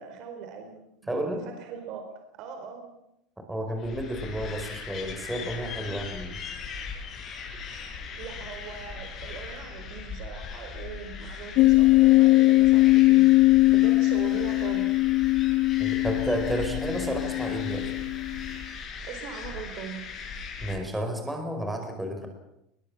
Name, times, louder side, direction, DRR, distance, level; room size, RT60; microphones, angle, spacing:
voice 1, 0.0-2.1 2.4-2.9 5.9-6.0 7.9-13.2 13.7-15.0 19.0-20.0, right 6 dB, 55° right, 5 dB, 4.5 m, -40 dB
voice 2, 1.1-1.4 3.5-6.3 15.8-17.9 20.6-22.3, right 1 dB, 5° right, 4 dB, 4.9 m, -31 dB
sound 1, 3.8-20.8, left 5 dB, 35° left, 7.2 m, -39 dB
sound 2, 11.6-18.6, left 19 dB, 60° left, 1.5 m, -21 dB
21.5 x 21.0 x 7.4 m, 0.81 s
supercardioid pair, 120°, 0 cm